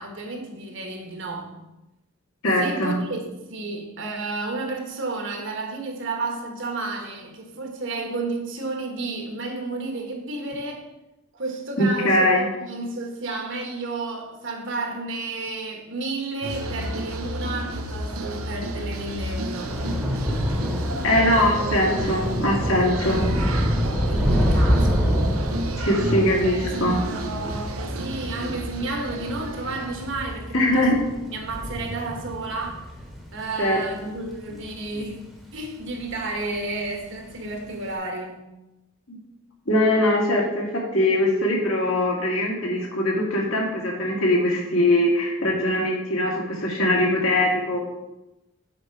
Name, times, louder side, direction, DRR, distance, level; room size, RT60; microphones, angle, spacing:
voice 1, 0.0-1.5 2.6-10.9 11.3-19.7 24.1-25.2 26.4-30.9 31.3-32.8 33.3-35.2 35.5-38.4, right 2 dB, 60° right, 1.4 m, -32 dB
voice 2, 2.4-3.0 11.8-12.4 20.9-23.2 25.8-27.0 30.5-31.0 33.6-34.1 39.1-39.2 39.7-47.8, left 1 dB, 70° left, 2.1 m, -22 dB
sound 1, 16.4-30.1, right 1 dB, 85° right, 0.8 m, -31 dB
Thunder / Rain, 19.1-35.7 36.0-36.4 36.7-36.9, equal, ahead, 1.1 m, -27 dB
8.1 x 5.0 x 4.6 m
head